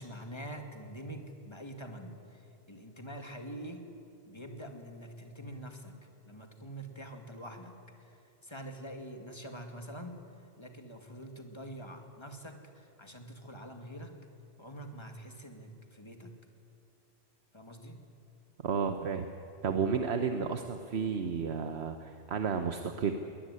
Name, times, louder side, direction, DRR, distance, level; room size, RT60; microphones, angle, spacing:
voice 1, 0.0-3.9 4.3-6.0 6.3-10.2 10.6-14.1 14.6-16.3 17.5-18.0, right 1 dB, 25° left, 4 dB, 2.2 m, -45 dB
voice 2, 18.6-19.3 19.6-23.1, right 6 dB, 75° right, 7 dB, 1.3 m, -32 dB
22.5 x 19.0 x 9.8 m, 2.7 s
omnidirectional pair, 1.1 m